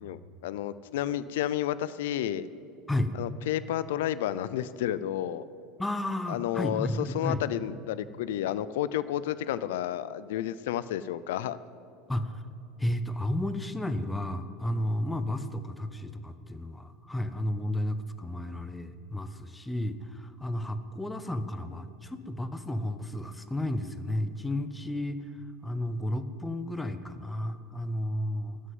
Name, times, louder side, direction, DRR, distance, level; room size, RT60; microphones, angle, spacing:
voice 1, 0.0-2.5 3.1-5.4 6.3-11.6, left 12 dB, 85° left, 16 dB, 0.5 m, -31 dB
voice 2, 5.8-7.4 12.1-12.4 12.8-25.2 25.6-28.6, left 1 dB, 5° left, 10 dB, 0.5 m, -32 dB
13.0 x 6.5 x 9.3 m, 2.7 s
supercardioid pair, 170°, 0 cm